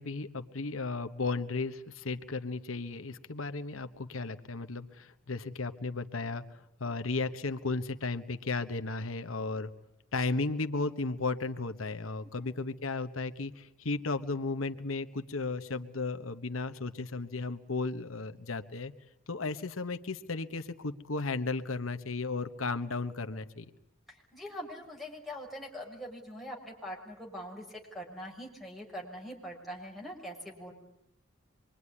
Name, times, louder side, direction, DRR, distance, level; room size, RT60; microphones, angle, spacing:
voice 1, 0.0-9.7 10.1-18.9 19.3-23.7, left 3 dB, 90° left, 9 dB, 1.2 m, -35 dB
voice 2, 24.1-30.7, equal, ahead, 0 dB, 6.3 m, -43 dB
26.0 x 23.0 x 9.9 m, 0.78 s
head